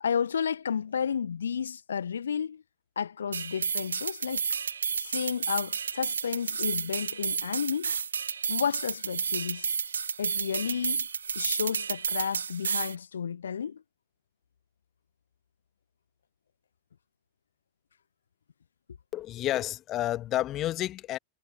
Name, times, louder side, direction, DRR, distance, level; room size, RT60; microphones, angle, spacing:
voice 1, 0.0-2.6 3.0-4.4 5.0-7.9 8.5-9.8 10.2-11.1 11.3-13.8, left 7 dB, 70° left, 1.0 m, -32 dB
sound 1, 3.3-13.0, right 6 dB, 70° right, 0.4 m, -31 dB
voice 2, 19.1-21.2, left 14 dB, 35° left, 1.8 m, -30 dB
figure-of-eight pair, 90°, 0 cm